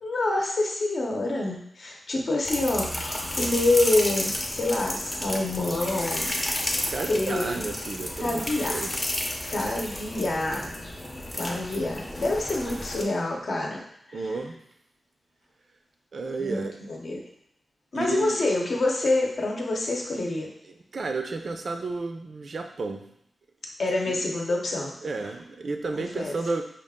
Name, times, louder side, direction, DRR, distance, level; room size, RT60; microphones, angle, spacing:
voice 1, 0.0-6.3 6.6-7.6 8.2-8.8 9.4-10.7 11.3-13.8 16.4-17.2 17.9-20.5 23.8-24.9 25.9-26.4, left 2 dB, 60° left, -1 dB, 0.8 m, -27 dB
sound 1, 2.5-13.0, left 1 dB, 20° left, 0.6 m, -32 dB
voice 2, 6.9-8.9 14.1-14.6 16.1-16.7 17.9-18.4 20.7-23.0 24.1-24.2 25.0-26.6, right 3 dB, 55° right, 5 dB, 0.4 m, -32 dB
5.1 x 2.4 x 3.6 m, 0.75 s
wide cardioid pair, 135°, 0 cm